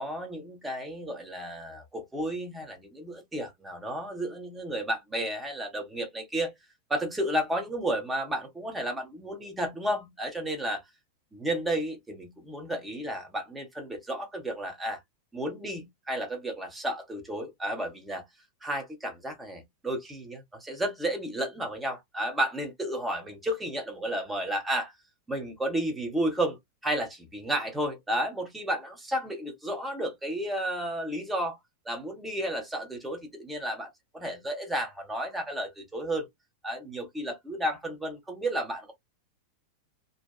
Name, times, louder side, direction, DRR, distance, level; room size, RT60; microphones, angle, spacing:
voice 1, 0.0-6.5 6.9-10.8 11.3-15.0 15.3-18.2 18.6-24.9 25.3-26.6 26.8-31.6 31.8-36.3 36.6-38.9, right 1 dB, 10° right, 0.9 m, -32 dB
2.7 x 2.2 x 2.3 m
figure-of-eight pair, 90°, 0 cm